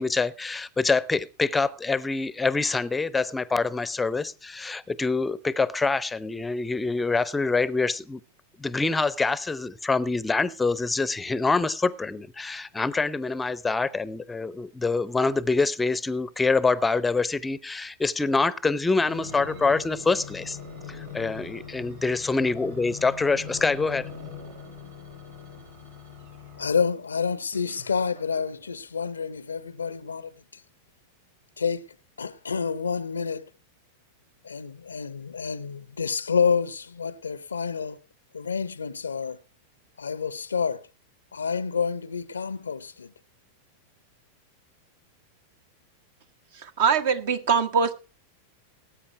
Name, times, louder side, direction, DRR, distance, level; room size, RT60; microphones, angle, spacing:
voice 1, 0.0-8.2 8.6-20.6 20.9-24.1, left 3 dB, 10° left, 0.7 m, -25 dB
sound 1, 19.0-26.9 27.5-28.8 29.4-29.5, left 5 dB, 75° right, 6.1 m, -42 dB
voice 2, 26.6-30.6 31.6-31.9 32.2-33.5 34.4-38.0 38.3-39.4 40.0-40.9 41.3-43.1, left 6 dB, 75° left, 0.6 m, -28 dB
voice 3, 46.8-47.9, right 6 dB, 55° right, 1.4 m, -22 dB
18.5 x 8.7 x 4.6 m
figure-of-eight pair, 90°, 0 cm